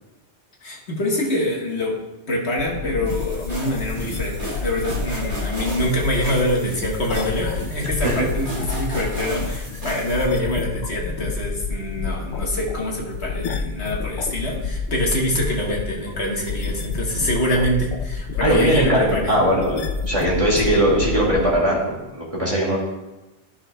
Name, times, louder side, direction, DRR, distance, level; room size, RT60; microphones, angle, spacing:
voice 1, 0.6-1.9 2.3-19.3 20.6-20.7, equal, 70° left, -2 dB, 1.7 m, -25 dB
sound 1, 2.6-21.6, left 5 dB, 90° left, 1.0 m, -29 dB
sound 2, 3.1-10.3, right 1 dB, 50° right, 1.6 m, -34 dB
voice 2, 18.4-22.8, equal, 30° right, -4 dB, 2.1 m, -20 dB
13.5 x 5.8 x 2.2 m, 1.1 s
omnidirectional pair, 1.2 m